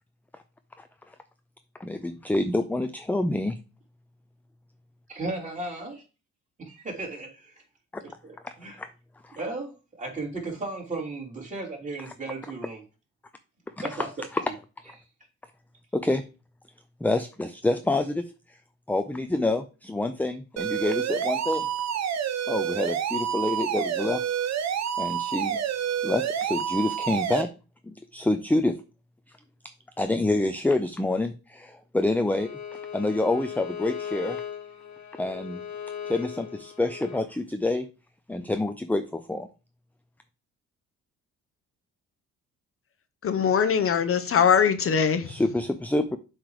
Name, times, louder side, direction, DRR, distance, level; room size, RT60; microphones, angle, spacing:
voice 1, 1.8-3.6 8.4-8.5 8.8-8.9 9.2-9.4 13.8-14.1 14.3-14.4 15.9-16.2 17.0-18.3 18.9-21.7 22.5-24.2 25.0-25.6 26.0-27.5 27.8-28.8 30.0-32.6 32.9-34.4 35.2-35.6 36.1-37.9 38.3-39.5 45.2-46.2, left 2 dB, 5° left, 0.5 m, -27 dB
voice 2, 5.1-5.9 7.0-7.3 8.0-8.8 9.3-12.8 13.8-14.1, right 2 dB, 25° right, 3.6 m, -35 dB
sound 1, 20.6-27.4, right 9 dB, 60° right, 1.0 m, -28 dB
Bowed string instrument, 32.3-37.3, left 8 dB, 70° left, 1.6 m, -37 dB
voice 3, 43.2-45.3, left 7 dB, 45° left, 0.8 m, -21 dB
7.6 x 3.2 x 4.9 m
cardioid pair, 90°, 30 cm